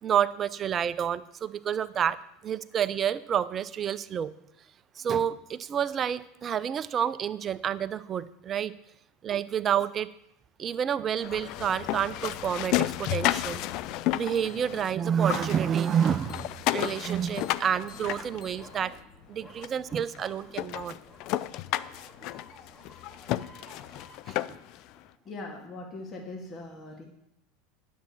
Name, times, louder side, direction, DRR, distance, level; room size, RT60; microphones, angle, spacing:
voice 1, 0.0-2.2 2.4-4.3 5.0-8.7 9.2-10.1 10.6-13.6 14.1-19.0 19.3-20.9 24.3-24.4, right 8 dB, 35° right, 15 dB, 0.6 m, -29 dB
sound 1, 11.2-14.9 15.2-18.9 19.6-19.7 20.1-20.2 20.5-24.8, left 15 dB, 55° left, 0.5 m, -32 dB
sound 2, 11.5-14.9 15.8-24.2, left 4 dB, 20° left, 2.6 m, -51 dB
voice 2, 25.2-27.0, left 2 dB, 35° left, 1 dB, 2.5 m, -40 dB
10.5 x 7.4 x 7.4 m, 0.80 s
hypercardioid pair, 85°, 0 cm